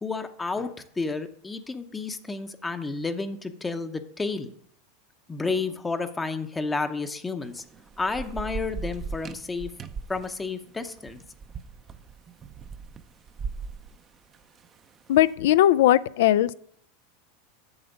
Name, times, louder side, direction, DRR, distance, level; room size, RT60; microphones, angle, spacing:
voice 1, 0.0-4.5 5.3-7.6 8.0-9.7 10.1-11.2, left 4 dB, 15° left, 8 dB, 0.7 m, -31 dB
Thunder / Rain, 7.4-15.1, right 5 dB, 30° right, 0.6 m, -39 dB
voice 2, 15.1-16.5, left 13 dB, 75° left, 17 dB, 0.3 m, -19 dB
7.9 x 6.8 x 5.2 m, 0.67 s
supercardioid pair, 125°, 0 cm